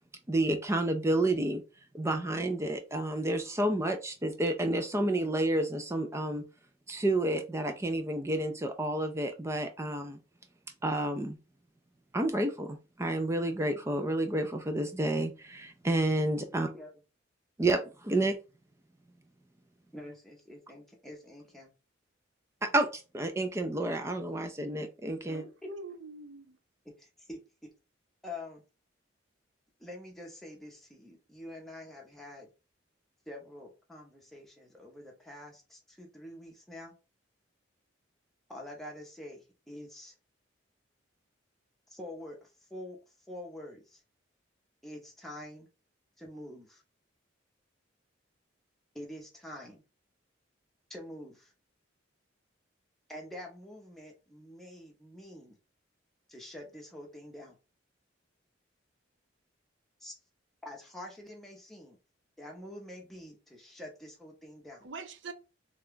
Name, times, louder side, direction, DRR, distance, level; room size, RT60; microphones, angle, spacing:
voice 1, 0.3-1.6 1.9-6.4 6.9-10.2 10.8-11.4 12.1-16.7 17.6-18.4 22.6-25.4, right 1 dB, 15° right, 0.4 m, -30 dB
voice 2, 16.5-17.0 19.9-21.7 27.0-27.4 28.2-28.6 29.8-32.5 33.3-36.9 38.5-40.1 41.9-43.0 43.3-44.0 44.8-45.7 46.2-46.8 48.9-49.8 50.9-51.5 53.1-55.6 56.3-57.5 60.0-60.1 60.6-62.0 62.4-64.9, left 1 dB, ahead, 0.8 m, -46 dB
voice 3, 25.3-26.5 64.8-65.3, right 3 dB, 65° right, 0.6 m, -43 dB
3.3 x 2.4 x 3.7 m
head